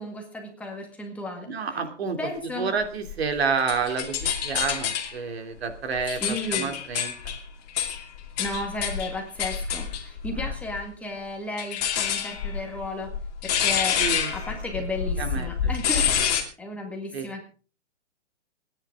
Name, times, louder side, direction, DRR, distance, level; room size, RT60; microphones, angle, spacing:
voice 1, 0.0-1.5 2.2-2.7 6.2-6.7 8.4-13.1 13.4-14.0 14.3-17.5, left 2 dB, 5° left, 1 dB, 1.9 m, -34 dB
voice 2, 1.5-2.2 2.6-7.4 10.3-10.5 14.0-14.3 14.7-14.8 15.2-15.5 17.1-17.3, right 5 dB, 60° right, 6 dB, 3.1 m, -29 dB
sound 1, 3.1-5.2 5.7-10.8 11.6-16.4, left 8 dB, 35° left, 2.7 m, -28 dB
25.5 x 10.0 x 3.7 m, 0.38 s
hypercardioid pair, 160°, 35 cm